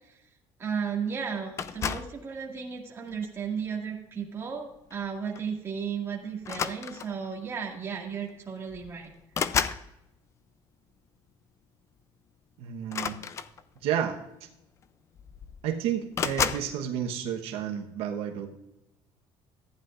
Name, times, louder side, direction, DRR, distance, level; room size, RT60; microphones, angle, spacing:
voice 1, 0.6-9.1, right 6 dB, 25° right, 0 dB, 2.0 m, -34 dB
sound 1, 1.6-2.2 3.1-3.4 4.9-5.1 5.3-5.5 6.4-7.3 8.3-8.4 8.7-9.9 12.8-13.9 14.8-14.9 15.2-15.7 16.1-16.7, left 7 dB, 30° left, 0.4 m, -31 dB
voice 2, 12.6-13.2 13.8-14.2 15.6-18.5, right 9 dB, 80° right, 3 dB, 1.1 m, -31 dB
14.5 x 9.7 x 2.5 m, 0.89 s
cardioid pair, 160°, 10 cm